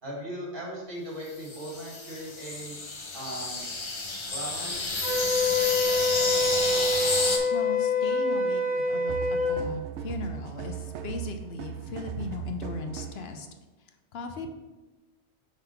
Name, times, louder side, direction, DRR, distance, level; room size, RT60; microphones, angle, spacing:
voice 1, 0.0-2.8 3.1-3.6 4.3-4.8, equal, 50° right, -3 dB, 2.0 m, -38 dB
sound 1, 1.3-7.4, left 3 dB, 30° left, 0.7 m, -30 dB
Wind instrument woodwind instrument, 5.0-9.6, left 2 dB, 5° right, 1.7 m, -26 dB
voice 2, 7.5-13.5 14.1-14.5, left 3 dB, 70° left, 5 dB, 0.8 m, -38 dB
sound 2, 9.1-13.3, right 8 dB, 80° right, 0.9 m, -37 dB
5.7 x 3.6 x 5.6 m, 1.1 s
omnidirectional pair, 1.2 m